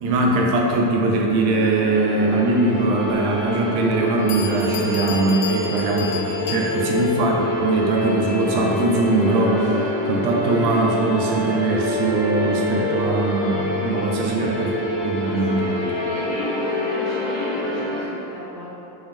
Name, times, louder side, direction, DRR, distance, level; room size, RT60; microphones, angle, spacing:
voice 1, 0.0-14.8 15.0-15.8, right 2 dB, 75° right, 0 dB, 0.6 m, -21 dB
sound 1, 1.3-18.1, left 1 dB, 40° left, 1.0 m, -26 dB
Bell, 3.9-4.0 4.3-7.1, left 6 dB, 90° left, 0.7 m, -33 dB
voice 2, 15.2-18.7, equal, ahead, -14 dB, 1.2 m, -35 dB
3.5 x 3.0 x 3.5 m, 2.9 s
cardioid pair, 165°, 46 cm